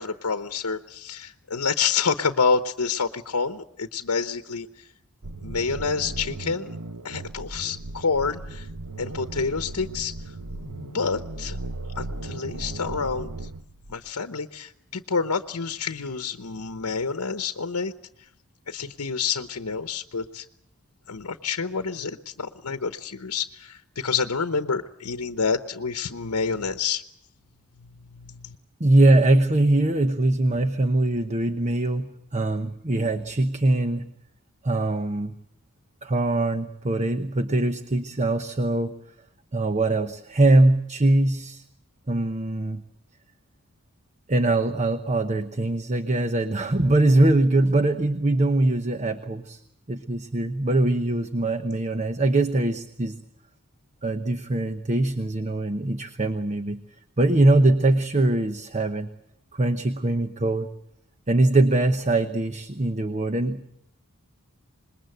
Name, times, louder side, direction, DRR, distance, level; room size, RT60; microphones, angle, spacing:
voice 1, 0.0-4.7 5.4-6.7 7.0-8.7 9.0-10.2 10.5-11.6 11.9-13.3 13.9-17.9 18.7-20.4 21.1-27.0 28.1-28.6, left 5 dB, 80° left, 8 dB, 0.9 m, -28 dB
sound 1, 5.2-14.1, right 2 dB, 75° right, 1.1 m, -36 dB
voice 2, 28.8-34.1 34.6-35.3 36.0-38.9 39.5-41.6 42.1-42.8 44.3-49.6 49.9-53.2 54.0-56.8 57.2-59.1 59.5-60.7 61.3-63.7, right 2 dB, 30° right, 8 dB, 1.0 m, -22 dB
26.5 x 21.0 x 7.9 m, 0.74 s
head